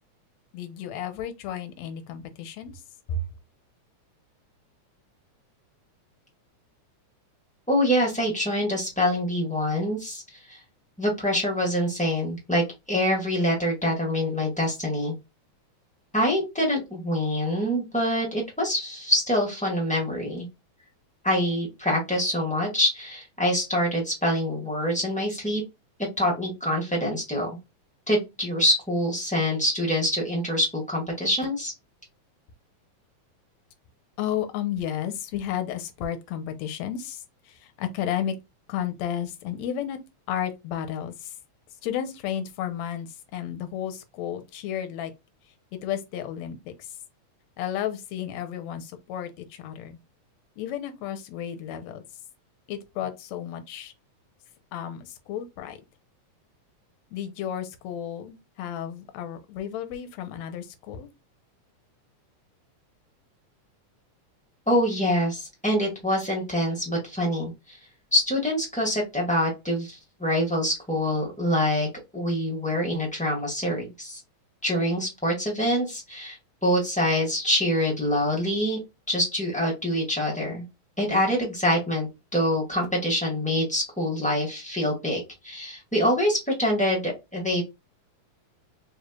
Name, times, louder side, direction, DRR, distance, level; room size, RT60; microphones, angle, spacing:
voice 1, 0.5-2.8 3.1-3.3 34.2-38.4 38.7-40.0 40.3-41.4 41.8-45.1 45.8-47.0 47.6-50.0 50.6-52.0 52.7-53.9 54.7-55.8 57.1-61.1, left 9 dB, 75° left, 1.9 m, -32 dB
voice 2, 7.7-10.2 10.5-10.6 11.0-15.1 16.1-20.4 21.2-25.6 26.2-27.6 28.1-31.7 64.7-67.8 68.1-71.9 72.1-74.2 74.6-76.4 76.6-78.8 79.1-80.6 81.0-87.6, equal, 5° left, 0.9 m, -25 dB
4.7 x 3.2 x 2.4 m
omnidirectional pair, 3.4 m